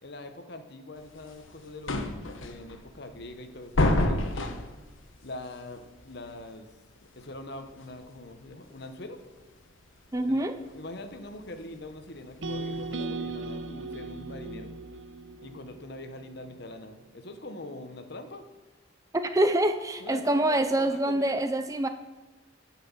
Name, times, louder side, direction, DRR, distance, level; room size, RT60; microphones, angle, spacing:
voice 1, 0.0-4.6 5.2-6.7 7.2-9.2 10.2-14.7 15.4-18.4 20.0-21.4, left 2 dB, 55° left, 8 dB, 1.0 m, -43 dB
sound 1, 1.0-13.1, left 1 dB, 80° left, 1.1 m, -32 dB
voice 2, 10.1-10.5 19.1-21.9, right 1 dB, 15° right, 9 dB, 0.4 m, -25 dB
sound 2, 12.4-16.6, right 3 dB, 65° right, 0.8 m, -37 dB
10.0 x 5.9 x 7.2 m, 1.2 s
head